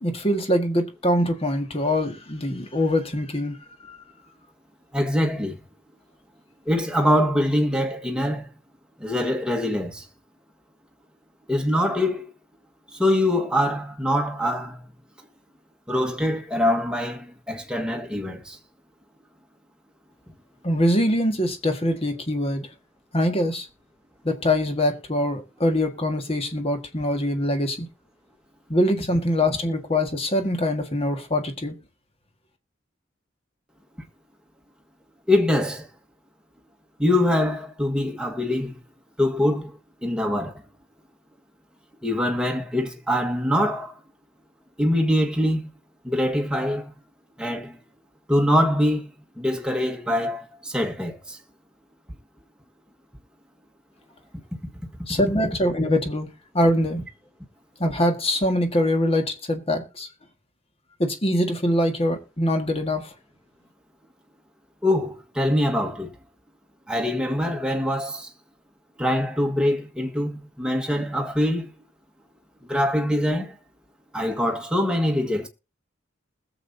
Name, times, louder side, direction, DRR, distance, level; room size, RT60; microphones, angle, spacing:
voice 1, 0.0-3.6 3.9-4.0 20.6-22.7 23.1-23.7 24.2-27.9 28.7-31.7 55.1-57.0 57.8-60.1 61.0-63.1, left 1 dB, 30° left, 1.7 m, -23 dB
voice 2, 4.9-5.6 6.7-8.5 9.0-10.1 11.5-12.2 12.9-14.8 15.9-18.6 35.3-35.9 37.0-38.8 39.2-40.6 42.0-43.9 44.8-45.7 46.0-46.9 47.4-47.8 48.3-49.1 49.4-51.4 55.1-55.2 64.8-66.1 66.9-68.3 69.0-71.7 72.7-73.5 74.1-75.5, left 1 dB, 5° right, 1.5 m, -24 dB
20.5 x 7.3 x 2.7 m
head